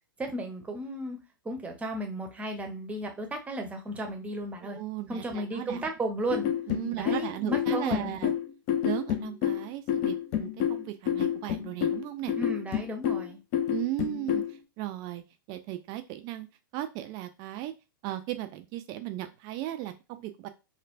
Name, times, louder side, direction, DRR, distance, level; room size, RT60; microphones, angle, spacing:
voice 1, 0.2-1.2 1.4-4.8 5.1-6.4 7.0-8.3 12.4-13.4, right 1 dB, 10° right, 4 dB, 0.7 m, -34 dB
voice 2, 4.6-5.9 6.7-8.3 8.8-12.3 13.7-15.2 15.5-16.5 16.7-17.7 18.0-20.5, right 14 dB, 35° right, 8 dB, 0.3 m, -36 dB
sound 1, 6.3-14.5, left 9 dB, 40° left, 0.5 m, -29 dB
3.3 x 2.1 x 2.5 m, 0.27 s
hypercardioid pair, 105°, 12 cm